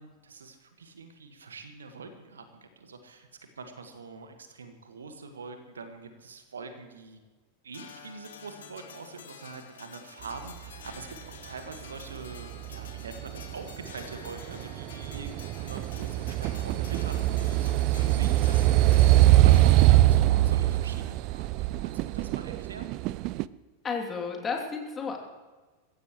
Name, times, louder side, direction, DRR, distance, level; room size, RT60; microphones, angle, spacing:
voice 1, 0.0-3.3 3.5-7.2 7.6-22.9, right 4 dB, 70° right, 7 dB, 1.7 m, -44 dB
sound 1, 7.7-20.2, left 7 dB, 60° left, 1.6 m, -49 dB
sound 2, 12.1-23.4, right 16 dB, 40° right, 0.4 m, -23 dB
voice 2, 23.8-25.2, left 5 dB, 20° left, 1 dB, 3.0 m, -32 dB
24.0 x 15.5 x 3.2 m, 1.3 s
figure-of-eight pair, 90°, 0 cm